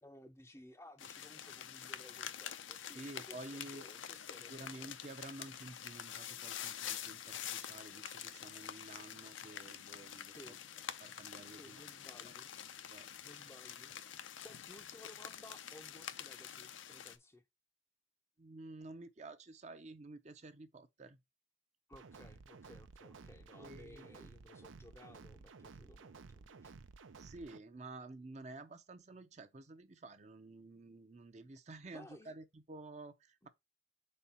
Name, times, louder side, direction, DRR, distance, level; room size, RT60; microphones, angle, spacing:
voice 1, 0.0-3.0 3.3-4.9 10.3-10.6 11.5-12.5 13.2-13.9 14.4-17.4 21.9-26.7 31.9-32.3, left 1 dB, 15° left, 0.5 m, -58 dB
sound 1, 1.0-17.2, left 9 dB, 80° left, 0.6 m, -47 dB
voice 2, 2.9-3.9 4.5-10.6 11.0-11.8 12.2-12.3 12.9-13.1 18.4-21.2 23.6-24.1 27.2-33.5, right 2 dB, 35° right, 0.6 m, -51 dB
sound 2, 21.9-27.6, right 4 dB, 80° right, 0.6 m, -55 dB
4.4 x 4.3 x 5.4 m
head